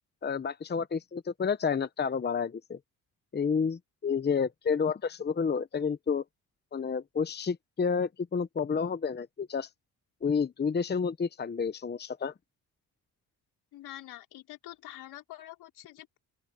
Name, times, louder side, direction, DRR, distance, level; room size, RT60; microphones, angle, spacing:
voice 1, 0.2-2.8 3.3-6.2 6.7-9.7 10.2-12.3, left 6 dB, 25° left, 0.9 m, -30 dB
voice 2, 13.7-16.2, left 14 dB, 80° left, 4.9 m, -46 dB
open air
cardioid pair, 85°, 37 cm